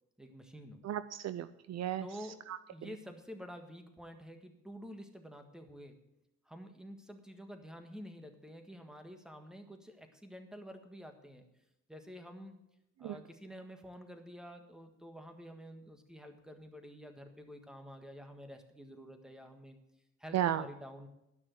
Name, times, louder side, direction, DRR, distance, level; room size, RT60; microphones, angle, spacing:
voice 1, 0.2-0.8 2.0-2.4 2.7-6.0 6.4-11.4 11.9-12.6 13.0-19.8 20.2-21.1, equal, ahead, 5 dB, 1.6 m, -49 dB
voice 2, 0.8-2.1 2.5-2.9 13.0-13.2 20.3-20.6, right 11 dB, 60° right, 13 dB, 0.6 m, -35 dB
12.0 x 6.1 x 7.6 m, 0.87 s
cardioid pair, 90°, 30 cm